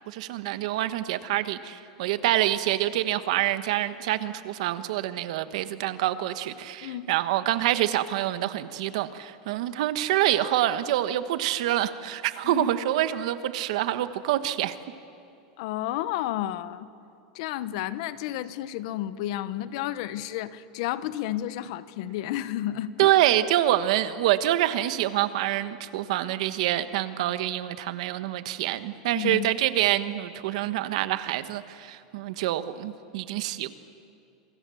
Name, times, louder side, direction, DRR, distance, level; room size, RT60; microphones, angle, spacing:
voice 1, 0.1-14.8 23.0-33.7, right 13 dB, 65° right, 11 dB, 1.3 m, -26 dB
voice 2, 6.8-7.1 12.4-12.7 15.6-16.9 17.3-23.2 29.1-29.5, left 13 dB, 60° left, 15 dB, 1.0 m, -31 dB
27.5 x 24.5 x 7.1 m, 2.6 s
supercardioid pair, 155°, 4 cm